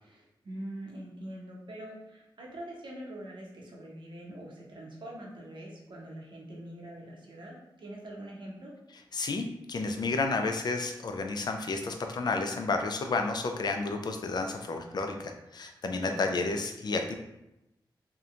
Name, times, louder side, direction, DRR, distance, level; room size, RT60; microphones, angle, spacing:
voice 1, 0.0-8.7 15.9-16.2, right 1 dB, 70° right, -2 dB, 0.7 m, -44 dB
voice 2, 9.1-17.2, left 3 dB, 55° left, 5 dB, 0.3 m, -31 dB
2.8 x 2.1 x 2.4 m, 0.91 s
cardioid pair, 60°, 8 cm